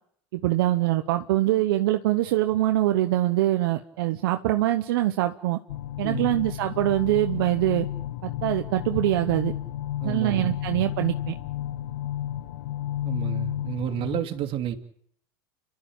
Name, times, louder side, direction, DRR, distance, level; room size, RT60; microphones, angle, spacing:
voice 1, 0.3-5.6 6.0-7.9 8.2-9.5 10.0-11.3, right 15 dB, 75° right, 1.1 m, -24 dB
sound 1, 5.7-14.2, left 12 dB, 80° left, 0.9 m, -32 dB
voice 2, 6.0-6.3 10.0-10.5 13.0-14.7, right 10 dB, 50° right, 2.8 m, -31 dB
29.5 x 12.5 x 8.9 m
hypercardioid pair, 95°, 12 cm